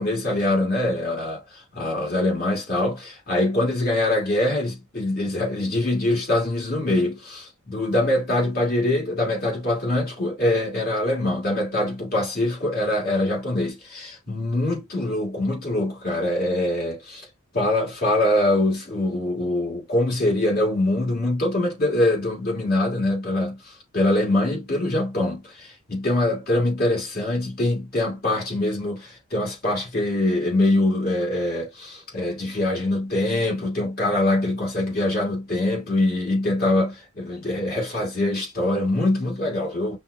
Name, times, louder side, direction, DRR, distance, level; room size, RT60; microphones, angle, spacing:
voice 1, 0.0-17.3 17.5-40.0, left 1 dB, 45° left, 2.3 m, -24 dB
5.9 x 2.5 x 2.7 m
head